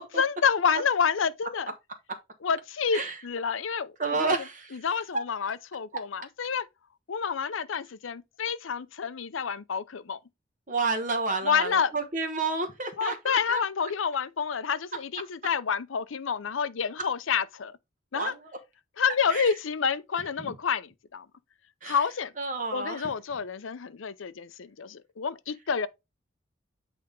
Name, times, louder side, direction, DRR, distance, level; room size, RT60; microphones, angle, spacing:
voice 1, 0.2-1.7 2.4-3.9 4.2-4.4 4.7-6.7 7.1-10.2 11.4-11.9 13.0-17.8 18.1-18.3 19.0-21.3 21.8-22.3 22.7-25.9, left 6 dB, 85° left, 0.6 m, -28 dB
voice 2, 4.0-4.9 5.1-5.2 10.7-13.6 18.1-18.5 19.3-19.5 20.4-20.6 21.8-22.0 22.4-23.1, right 3 dB, 40° right, 1.1 m, -30 dB
8.6 x 3.5 x 3.7 m
head